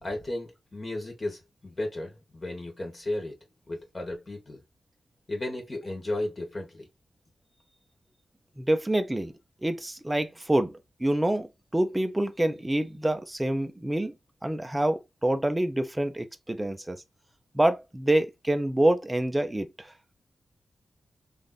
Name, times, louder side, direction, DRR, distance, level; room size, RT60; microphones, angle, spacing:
voice 1, 0.0-3.4 3.7-4.6 5.3-6.9, left 1 dB, 35° left, 1.2 m, -34 dB
voice 2, 8.6-9.3 9.6-14.1 14.4-17.0 17.5-19.9, right 1 dB, 10° right, 0.6 m, -26 dB
3.4 x 2.5 x 3.9 m
wide cardioid pair, 105°, 0 cm